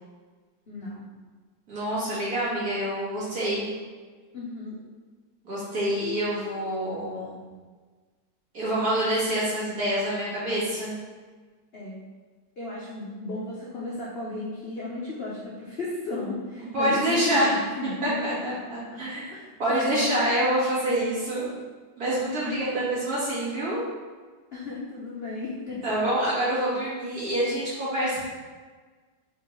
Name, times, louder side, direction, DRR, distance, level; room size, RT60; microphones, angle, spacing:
voice 1, 0.7-1.1 4.3-4.8 11.7-12.0 12.6-18.6 18.9-19.0 19.3-20.2 22.4-22.8 24.5-26.0, left 2 dB, 80° left, -6 dB, 0.5 m, -35 dB
voice 2, 1.7-3.7 5.4-7.4 8.5-11.0 16.7-17.6 18.0-19.3 19.6-21.5 22.0-23.9 25.8-28.2, right 1 dB, 55° right, -9 dB, 2.0 m, -26 dB
4.2 x 3.7 x 3.0 m, 1.4 s
omnidirectional pair, 2.0 m